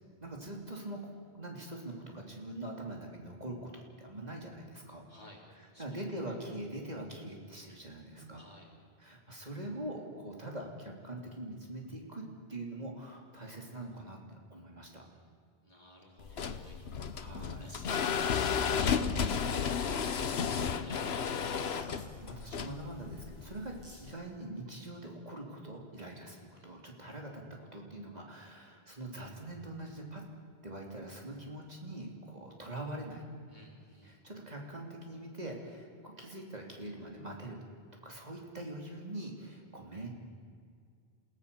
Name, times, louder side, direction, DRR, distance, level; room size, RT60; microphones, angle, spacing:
voice 1, 0.2-1.0 1.3-5.1 5.5-8.4 9.0-12.2 12.5-15.0 16.3-16.7 17.1-17.7 18.0-18.2 21.7-23.7 24.0-30.2 30.6-33.3 34.0-37.6 38.0-40.1, right 1 dB, 40° right, 0 dB, 3.2 m, -43 dB
voice 2, 5.1-6.0 8.3-8.7 15.6-16.9 17.6-20.4 20.6-22.0 26.2-26.7 33.5-34.2, left 1 dB, 45° left, -1 dB, 4.0 m, -55 dB
sound 1, 16.2-24.1, left 6 dB, 80° left, 1.2 m, -33 dB
sound 2, 16.6-17.1 17.3-17.8 19.0-19.1 19.3-20.2 21.5-22.1 23.2-23.3 23.7-24.0, equal, 25° right, 7.5 m, -58 dB
29.0 x 17.0 x 6.9 m, 2.1 s
omnidirectional pair, 1.0 m